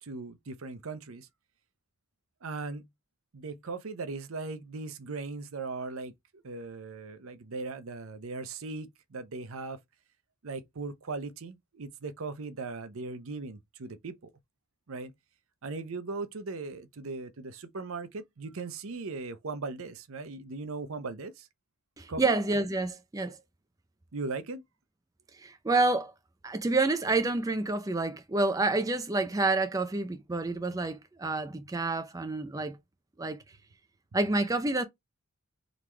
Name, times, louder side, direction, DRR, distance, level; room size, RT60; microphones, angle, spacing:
voice 1, 0.0-1.3 2.4-2.9 3.3-9.8 10.4-14.3 14.9-15.1 15.6-21.5 22.1-22.3 24.1-24.6, right 3 dB, 70° right, 0.7 m, -38 dB
voice 2, 22.0-23.4 25.3-26.1 26.4-32.8 33.2-33.4 34.1-34.8, right 2 dB, 15° right, 0.4 m, -28 dB
3.9 x 3.1 x 3.3 m
head